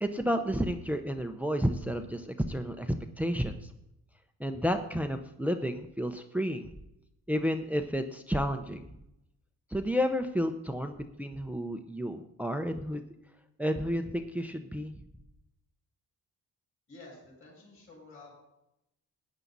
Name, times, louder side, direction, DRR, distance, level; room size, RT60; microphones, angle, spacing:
voice 1, 0.0-2.9 3.2-3.7 4.4-6.8 7.3-8.8 9.7-13.0 13.6-14.9, equal, 5° right, 7 dB, 0.7 m, -31 dB
voice 2, 16.9-18.4, left 2 dB, 35° left, -3 dB, 5.5 m, -51 dB
15.5 x 9.7 x 4.1 m, 0.86 s
cardioid pair, 120°, 35 cm